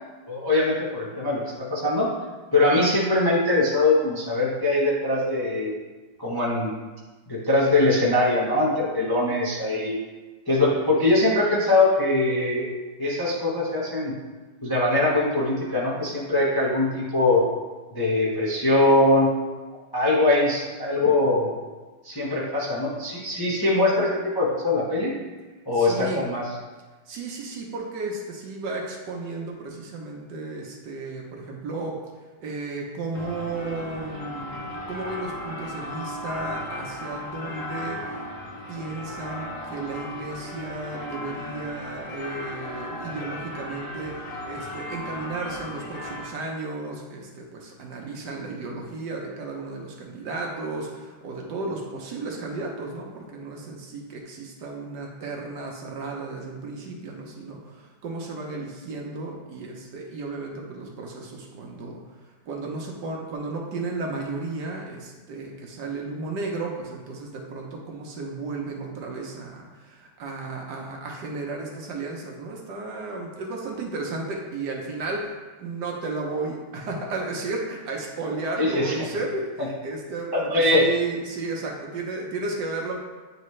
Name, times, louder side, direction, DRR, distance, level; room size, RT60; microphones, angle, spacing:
voice 1, 0.3-1.4 1.7-2.1 2.5-5.8 6.2-6.7 7.3-10.0 10.5-12.6 13.0-14.2 14.6-17.4 17.9-19.3 19.9-21.6 22.0-25.2 25.7-26.5 78.6-78.9 80.3-80.9, left 2 dB, 25° left, -7 dB, 0.5 m, -22 dB
voice 2, 25.7-26.2 27.1-32.0 32.4-38.2 38.7-62.0 62.5-75.3 75.6-83.0, right 3 dB, 65° right, 0 dB, 1.3 m, -33 dB
sound 1, 33.1-46.3, left 1 dB, 55° left, 1.0 m, -36 dB
9.2 x 3.3 x 3.1 m, 1.3 s
omnidirectional pair, 2.1 m